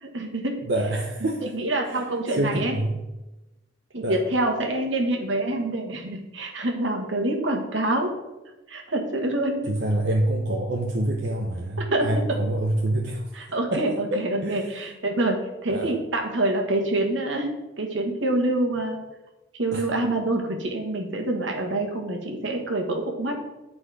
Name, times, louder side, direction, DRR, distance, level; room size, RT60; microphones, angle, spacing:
voice 1, 0.0-0.6 1.2-2.8 3.9-8.1 8.7-9.7 11.9-12.4 13.3-19.0 19.6-23.4, right 1 dB, 75° right, 2 dB, 1.5 m, -26 dB
voice 2, 0.7-2.0 2.3-3.0 4.0-4.2 9.7-13.2 13.7-14.7 15.7-15.9 19.7-19.9, right 1 dB, 55° right, 0 dB, 0.8 m, -26 dB
9.8 x 4.3 x 4.9 m, 1.0 s
head